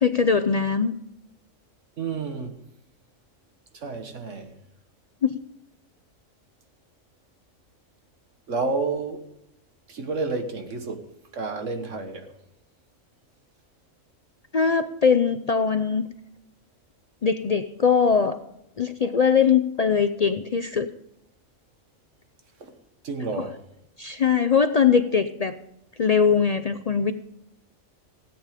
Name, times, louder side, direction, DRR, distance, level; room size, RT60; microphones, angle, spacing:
voice 1, 0.0-0.9 5.2-5.4 14.5-16.1 17.2-18.4 18.8-20.9 24.0-25.6 26.0-27.1, left 6 dB, 65° left, 0.4 m, -21 dB
voice 2, 2.0-2.6 3.7-4.5 8.5-9.2 9.9-11.0 11.3-12.3 22.6-22.7 23.0-23.6, right 4 dB, 65° right, 1.6 m, -30 dB
17.0 x 8.9 x 5.0 m
omnidirectional pair, 1.4 m